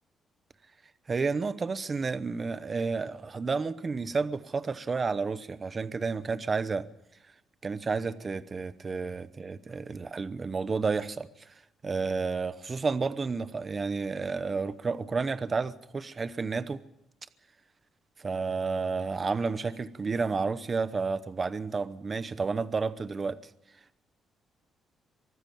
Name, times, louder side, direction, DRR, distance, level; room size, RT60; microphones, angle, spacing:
voice 1, 1.1-6.9 7.6-11.5 11.8-16.8 18.2-23.4, right 4 dB, 25° right, 0.8 m, -31 dB
24.0 x 13.5 x 8.6 m
cardioid pair, 165°, 0 cm